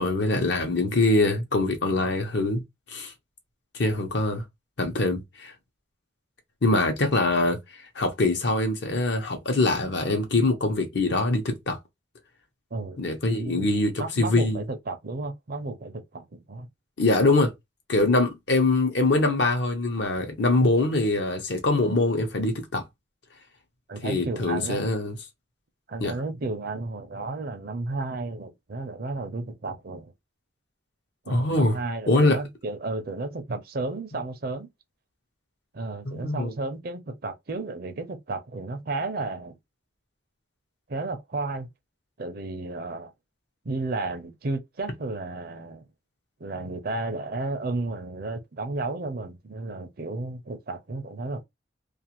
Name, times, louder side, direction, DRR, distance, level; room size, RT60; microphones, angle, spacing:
voice 1, 0.0-2.6 2.9-3.1 3.7-4.4 4.8-5.5 6.6-7.6 8.0-11.8 13.0-14.6 17.0-17.5 17.9-22.8 24.0-25.2 26.0-26.1 31.3-31.8 32.1-32.4 36.1-36.5, left 2 dB, 65° left, 0.8 m, -23 dB
voice 2, 13.4-13.7 14.0-16.7 23.9-24.8 25.9-30.1 31.3-34.7 35.7-39.6 40.9-41.7 42.2-43.1 43.6-45.9 46.4-51.4, right 3 dB, 50° right, 0.5 m, -33 dB
2.5 x 2.4 x 2.9 m
head